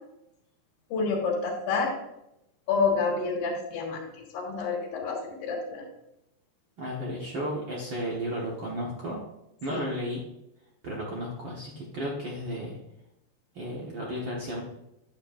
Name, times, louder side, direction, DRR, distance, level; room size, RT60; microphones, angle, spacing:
voice 1, 0.9-1.9 2.7-5.8 9.7-9.8, left 4 dB, 75° left, -3 dB, 3.4 m, -28 dB
voice 2, 6.8-9.2 9.6-10.2 10.8-12.8 13.5-14.6, equal, 75° right, -3 dB, 1.1 m, -33 dB
10.0 x 7.9 x 2.5 m, 0.85 s
omnidirectional pair, 4.3 m